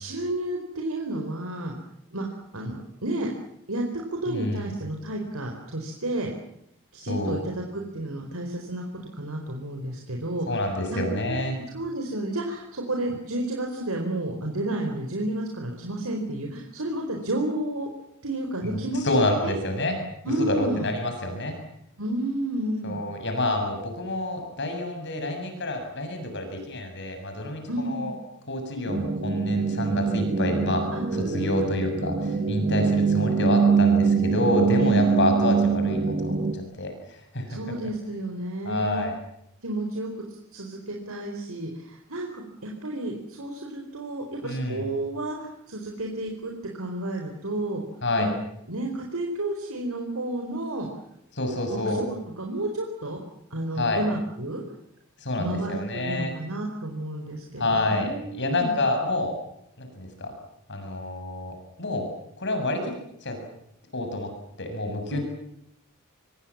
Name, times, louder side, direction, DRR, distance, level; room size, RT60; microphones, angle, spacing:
voice 1, 0.0-1.7 2.1-2.3 2.5-3.3 3.7-3.8 4.2-6.3 6.9-8.8 9.1-11.4 11.7-17.9 18.2-19.5 20.2-20.9 22.0-23.0 27.7-28.1 30.9-31.7 34.8-35.3 37.5-39.0 39.6-47.8 48.2-48.3 48.7-50.9 51.7-53.2 53.5-54.6 55.4-58.7 65.1-65.2, right 1 dB, 90° right, 1 dB, 4.3 m, -31 dB
voice 2, 4.3-4.7 7.1-7.4 10.5-11.6 18.6-20.0 20.2-21.5 22.8-28.1 28.5-30.9 31.1-36.9 37.3-37.6 38.7-39.1 44.4-44.8 48.0-48.3 51.3-52.0 53.8-54.0 55.2-56.3 57.6-59.3 59.8-60.3 60.7-62.1 62.4-62.9 63.2-63.4 63.9-64.3 64.6-65.2, left 2 dB, 55° left, 5 dB, 7.1 m, -28 dB
sound 1, 28.9-36.5, right 5 dB, 40° right, 1.8 m, -23 dB
26.0 x 23.5 x 7.4 m, 0.77 s
head